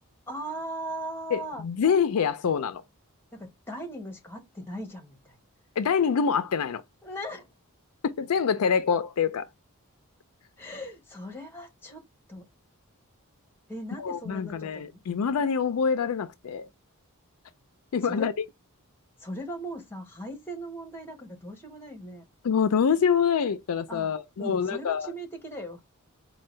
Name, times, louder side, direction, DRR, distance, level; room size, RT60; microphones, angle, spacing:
voice 1, 0.3-1.7 3.3-5.4 7.0-7.5 10.6-12.5 13.7-15.0 18.0-18.3 19.2-22.2 23.9-24.1 24.4-25.8, right 1 dB, 10° left, 1.1 m, -39 dB
voice 2, 1.3-2.8 5.8-6.8 8.0-9.5 14.0-16.7 17.9-18.3 22.4-25.1, left 6 dB, 70° left, 0.4 m, -25 dB
4.5 x 2.3 x 3.1 m
head